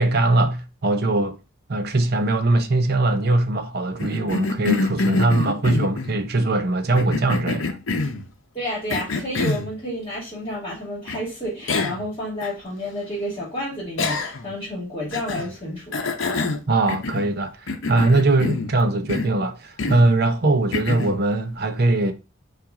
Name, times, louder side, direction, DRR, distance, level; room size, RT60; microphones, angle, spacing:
voice 1, 0.0-1.4 1.7-7.8 16.7-22.1, right 2 dB, 50° right, 0.6 m, -21 dB
Cough, 4.0-6.2 6.9-8.2 8.9-9.7 11.1-11.2 11.7-12.1 12.4-12.5 14.0-14.5 15.1-15.5 15.9-17.4 17.7-18.7 19.1-19.4 19.8-20.1 20.7-21.2, left 3 dB, 70° left, 0.7 m, -26 dB
voice 2, 8.5-15.9, equal, 25° left, 2.3 m, -30 dB
5.7 x 2.5 x 3.7 m
head